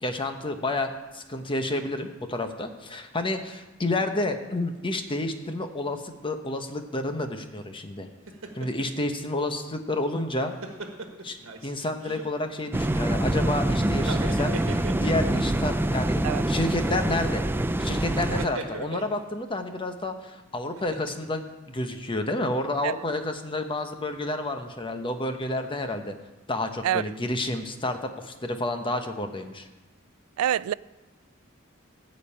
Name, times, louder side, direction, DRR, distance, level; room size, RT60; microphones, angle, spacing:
voice 1, 0.0-8.1 8.5-10.5 11.2-16.2 16.5-17.4 17.8-26.1 26.5-29.7, left 2 dB, 25° left, 0.9 m, -30 dB
sound 1, 8.3-9.0 10.2-11.7 12.0-12.7 13.9-15.5 16.1-16.3 18.2-19.2 20.7-21.4 21.8-22.0, right 3 dB, 65° right, 1.5 m, -38 dB
sound 2, 12.7-18.5, right 1 dB, 10° right, 0.4 m, -25 dB
voice 2, 30.4-30.7, right 10 dB, 85° right, 0.3 m, -26 dB
14.5 x 5.3 x 8.7 m
head